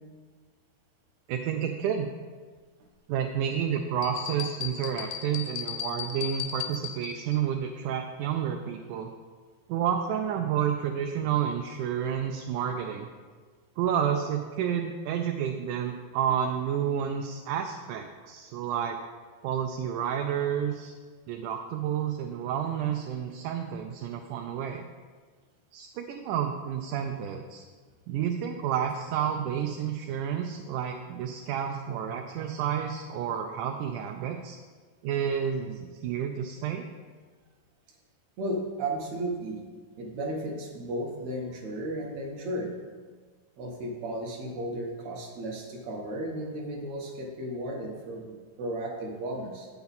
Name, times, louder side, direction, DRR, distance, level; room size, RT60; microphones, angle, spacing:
voice 1, 1.3-2.1 3.1-9.1 9.7-13.1 13.8-19.0 19.4-20.9 21.3-24.9 25.7-27.6 28.1-34.6 35.0-36.8, right 8 dB, 85° right, 3 dB, 2.1 m, -30 dB
sound 1, 4.0-7.4, left 9 dB, 85° left, 2.1 m, -36 dB
voice 2, 38.4-39.6 40.0-42.8 43.6-49.7, right 1 dB, 65° right, 0 dB, 2.2 m, -34 dB
8.6 x 6.9 x 4.1 m, 1.5 s
omnidirectional pair, 3.5 m